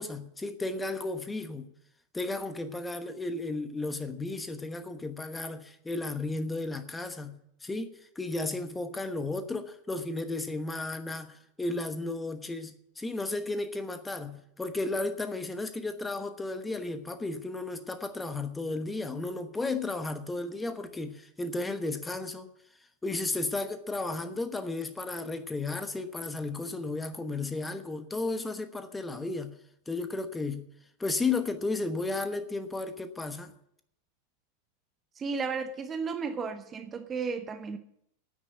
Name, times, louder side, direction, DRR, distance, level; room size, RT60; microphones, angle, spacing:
voice 1, 0.0-1.7 2.1-22.5 23.0-29.5 29.9-30.6 31.0-33.5, left 2 dB, 10° left, 1.1 m, -34 dB
voice 2, 35.1-37.8, right 5 dB, 20° right, 0.8 m, -33 dB
9.7 x 9.1 x 9.3 m
figure-of-eight pair, 90°, 0 cm